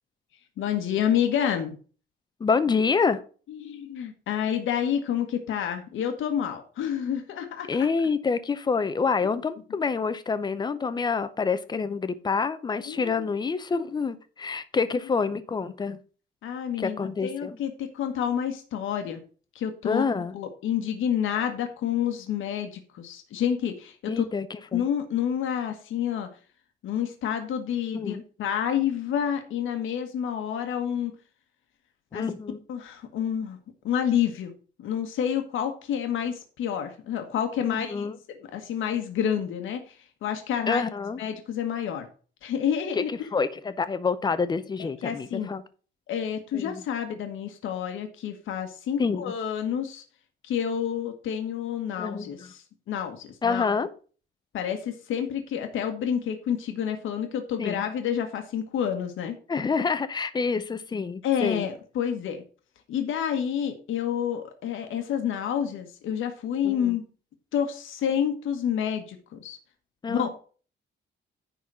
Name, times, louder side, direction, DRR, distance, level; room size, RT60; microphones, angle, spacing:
voice 1, 0.6-1.7 3.5-7.7 12.8-13.3 16.4-19.2 19.5-24.3 24.7-26.3 26.8-31.1 32.1-32.2 32.7-33.6 33.8-34.5 34.8-40.8 41.2-42.1 42.4-43.1 44.8-45.5 46.1-50.0 50.4-53.7 54.5-59.4 61.2-62.4 62.9-67.0 67.5-69.6 70.1-70.3, left 9 dB, 75° left, 6 dB, 1.4 m, -29 dB
voice 2, 2.4-3.2 7.7-16.0 16.8-17.6 19.8-20.3 24.1-24.8 27.9-28.2 32.1-32.6 37.6-38.2 40.7-41.2 42.9-43.0 43.3-45.6 46.5-46.8 49.0-49.3 52.0-52.5 53.4-53.9 57.6-57.8 59.5-61.7 66.6-67.0 70.0-70.3, left 5 dB, 20° left, 13 dB, 0.6 m, -27 dB
10.5 x 4.1 x 6.1 m, 0.39 s
cardioid pair, 170°, 21 cm